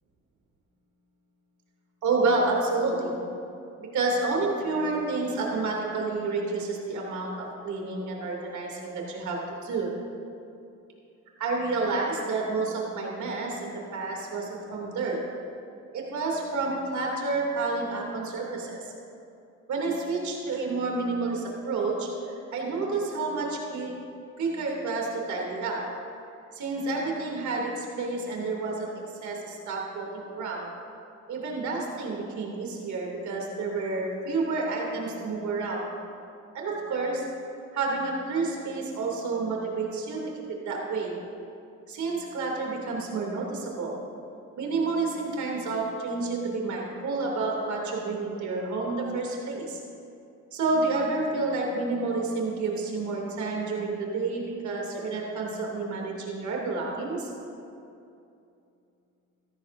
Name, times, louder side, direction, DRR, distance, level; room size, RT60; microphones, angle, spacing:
voice 1, 2.0-3.2 3.8-9.9 11.4-15.2 15.9-18.9 19.7-23.9 24.4-25.8 26.5-30.7 31.3-35.9 36.5-37.2 37.7-40.2 40.7-41.2 41.9-44.0 44.6-49.8 50.5-57.3, right 3 dB, 70° right, -1 dB, 2.8 m, -29 dB
16.5 x 13.5 x 2.6 m, 2.6 s
cardioid pair, 90°, 30 cm